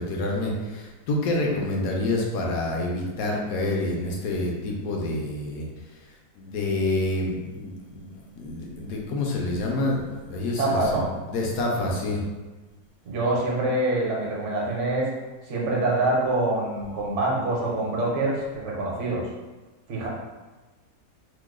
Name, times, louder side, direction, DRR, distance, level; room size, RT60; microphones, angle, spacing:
voice 1, 0.0-5.7 6.4-12.2 20.0-20.1, left 2 dB, 70° left, -1 dB, 1.0 m, -28 dB
voice 2, 10.6-11.1 13.0-15.1 15.5-19.3 19.9-20.1, right 2 dB, 60° right, -3 dB, 1.0 m, -25 dB
3.0 x 2.2 x 3.5 m, 1.2 s
omnidirectional pair, 1.7 m